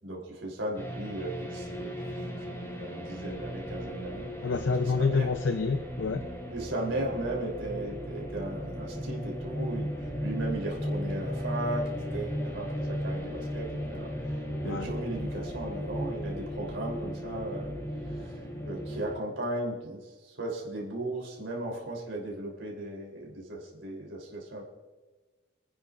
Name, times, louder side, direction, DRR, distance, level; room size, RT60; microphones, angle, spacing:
voice 1, 0.0-4.3 4.8-5.3 6.5-17.7 18.0-18.4 18.6-24.6, right 1 dB, 65° right, -2 dB, 3.3 m, -36 dB
sound 1, 0.8-19.2, equal, 15° left, 3.1 m, -36 dB
sound 2, 3.3-18.5, equal, 45° right, 3.5 m, -46 dB
voice 2, 4.4-6.3 14.6-14.9, left 4 dB, 65° left, 8 dB, 0.6 m, -28 dB
28.0 x 10.0 x 2.5 m, 1.3 s
head